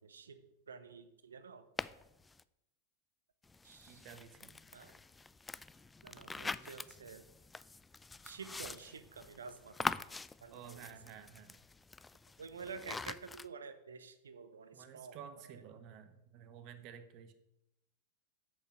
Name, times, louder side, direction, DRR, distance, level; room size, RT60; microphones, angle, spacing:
voice 1, 0.0-1.7 3.6-4.0 4.7-4.9 6.0-7.2 8.2-10.0 10.4-10.8 12.4-15.2 15.4-15.6, right 5 dB, 70° right, 11 dB, 0.8 m, -50 dB
sound 1, 1.8-2.4 3.4-13.5, left 3 dB, 10° left, 0.3 m, -44 dB
voice 2, 3.9-4.6 10.5-11.6 14.7-17.3, right 8 dB, 40° right, 10 dB, 1.0 m, -52 dB
7.9 x 6.8 x 6.0 m, 0.87 s
figure-of-eight pair, 90°, 0 cm